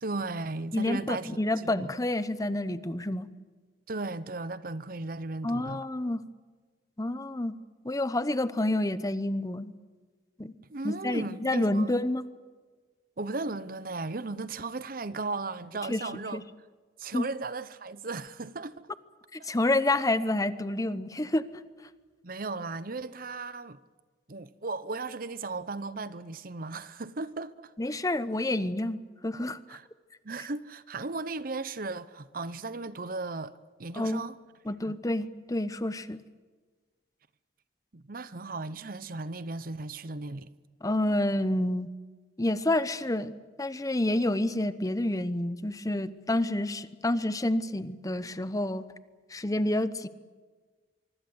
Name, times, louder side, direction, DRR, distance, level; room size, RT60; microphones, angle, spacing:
voice 1, 0.0-1.3 1.6-1.9 3.9-5.8 10.7-11.9 13.2-16.4 17.0-18.9 22.2-23.8 24.3-27.7 29.7-29.9 30.2-33.5 33.8-34.4 34.9-35.0 37.9-40.5, right 3 dB, 50° right, 0.9 m, -36 dB
voice 2, 0.7-3.3 5.4-6.2 7.0-7.6 7.8-9.7 10.4-10.5 10.8-12.3 15.9-16.0 16.3-16.4 17.1-17.2 19.3-21.4 27.8-29.6 33.9-34.2 34.7-36.2 40.8-41.9 42.4-43.3 43.6-48.8 49.3-50.1, left 1 dB, 20° left, 0.9 m, -28 dB
24.5 x 24.0 x 8.0 m
head